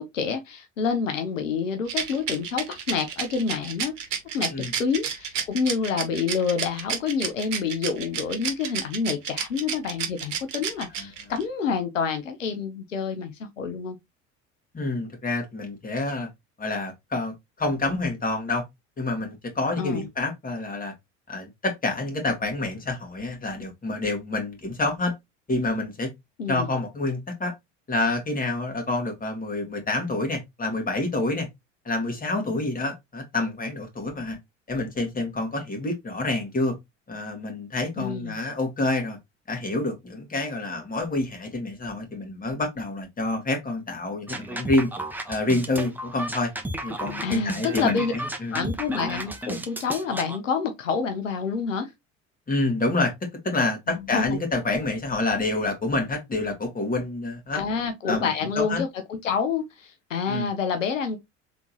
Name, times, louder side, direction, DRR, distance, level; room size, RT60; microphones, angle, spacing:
voice 1, 0.0-4.0 4.3-4.5 4.8-14.0 19.8-20.1 26.4-26.7 38.0-38.4 47.2-48.1 48.5-51.9 53.9-54.4 57.5-61.2, left 5 dB, 85° left, 0.7 m, -28 dB
Rattle, 1.9-11.4, right 8 dB, 80° right, 1.0 m, -30 dB
voice 2, 14.7-16.3 16.6-18.6 19.0-20.9 21.3-25.1 25.5-26.1 26.5-27.5 27.9-31.5 31.9-34.4 34.7-36.8 37.1-39.2 39.5-44.9 45.3-46.5 46.8-48.6 52.5-57.6 58.1-58.8 60.3-60.5, left 2 dB, 20° left, 2.0 m, -28 dB
sound 1, 44.3-50.4, right 1 dB, 5° right, 0.9 m, -33 dB
3.6 x 3.5 x 2.8 m
hypercardioid pair, 65°, 37 cm